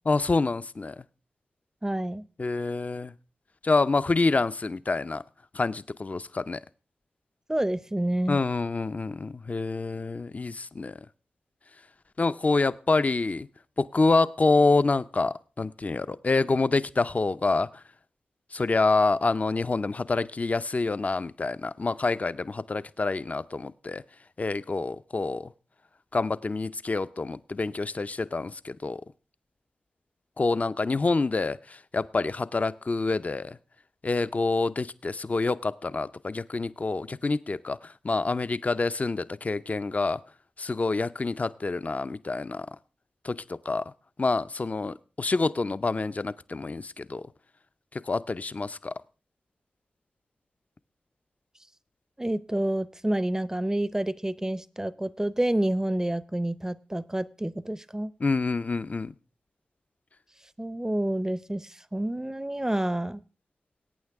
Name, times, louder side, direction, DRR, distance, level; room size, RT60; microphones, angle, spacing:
voice 1, 0.1-1.0 2.4-3.1 3.6-5.2 5.5-6.6 8.3-11.0 12.2-13.5 13.8-17.8 18.5-24.0 24.4-25.5 26.1-29.0 30.4-33.6 34.0-40.2 40.6-42.7 43.2-43.9 44.2-47.3 47.9-48.9 58.2-59.1, left 3 dB, 45° left, 14 dB, 0.6 m, -27 dB
voice 2, 1.8-2.2 7.5-8.4 52.2-58.1 60.6-63.2, right 1 dB, 15° right, 18 dB, 0.6 m, -28 dB
21.0 x 8.8 x 3.5 m, 0.35 s
cardioid pair, 40°, 4 cm